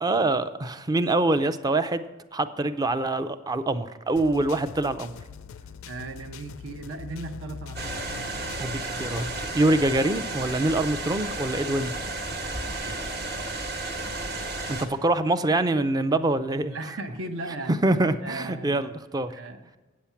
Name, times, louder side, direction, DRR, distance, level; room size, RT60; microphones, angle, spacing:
voice 1, 0.0-2.0 2.3-5.1 8.6-9.3 9.5-11.9 14.7-16.7 17.7-19.3, right 2 dB, 20° right, 11 dB, 0.4 m, -25 dB
sound 1, 4.2-9.5, left 6 dB, 85° left, 0.4 m, -42 dB
voice 2, 5.9-8.0 12.8-13.1 16.7-17.7 18.2-18.9 19.3-19.8, right 2 dB, 70° right, 6 dB, 0.9 m, -37 dB
sound 2, 7.8-14.9, right 2 dB, 50° right, 1.2 m, -33 dB
8.6 x 8.3 x 5.7 m, 1.2 s
head